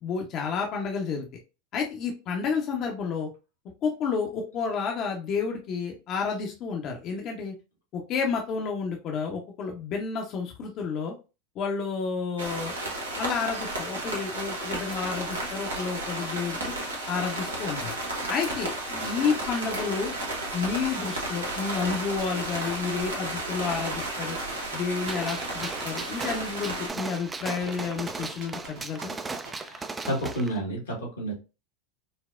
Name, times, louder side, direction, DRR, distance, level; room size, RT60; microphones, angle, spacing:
voice 1, 0.0-1.3 1.7-3.3 3.8-7.5 7.9-11.1 11.6-12.7 13.1-16.7 17.1-18.0 18.3-20.1 20.5-24.4 24.7-29.1, left 5 dB, 45° left, 1 dB, 0.6 m, -30 dB
sound 1, 12.4-26.9, right 1 dB, 90° right, 1.0 m, -33 dB
sound 2, 22.2-29.5, right 4 dB, 65° right, 1.3 m, -44 dB
Gunshot gunfire, 25.1-30.5, right 3 dB, 20° right, 0.3 m, -37 dB
voice 2, 29.5-31.3, right 1 dB, 85° left, 0 dB, 1.3 m, -31 dB
4.1 x 2.0 x 2.3 m, 0.30 s
hypercardioid pair, 90°, 0 cm